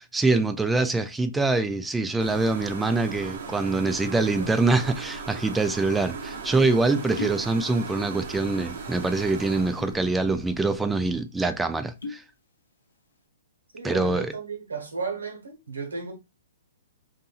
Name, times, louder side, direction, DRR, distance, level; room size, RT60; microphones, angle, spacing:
voice 1, 0.1-12.2 13.8-14.3, right 3 dB, 5° right, 0.3 m, -24 dB
sound 1, 2.2-11.2, right 4 dB, 60° right, 0.7 m, -38 dB
voice 2, 4.2-4.5 13.7-16.1, right 4 dB, 85° right, 1.3 m, -34 dB
sound 2, 7.1-7.5 7.8-8.4 8.7-8.9 9.6-10.1 10.5-10.6 10.9-11.1 11.7-12.3 12.7-13.1, left 3 dB, 85° left, 0.8 m, -37 dB
2.7 x 2.6 x 2.3 m
hypercardioid pair, 130°, 0 cm